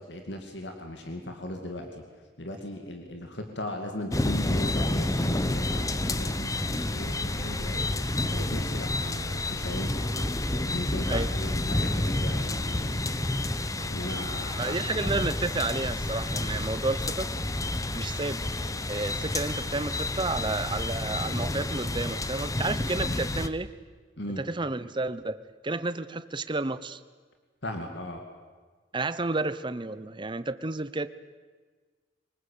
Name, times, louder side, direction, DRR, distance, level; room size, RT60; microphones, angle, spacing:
voice 1, 0.1-2.0 2.4-7.9 8.3-10.1 10.7-13.0 13.9-14.9 24.2-24.4 27.6-28.2, left 1 dB, 70° left, 4 dB, 2.5 m, -38 dB
sound 1, 4.1-23.5, left 1 dB, 20° left, 0.9 m, -29 dB
sound 2, 6.9-21.9, equal, 50° right, 4.0 m, -50 dB
voice 2, 14.5-17.3 17.9-18.4 18.9-23.7 24.4-25.4 25.6-27.0 28.9-31.1, right 3 dB, 25° right, 14 dB, 0.8 m, -31 dB
24.0 x 20.0 x 8.6 m, 1.4 s
head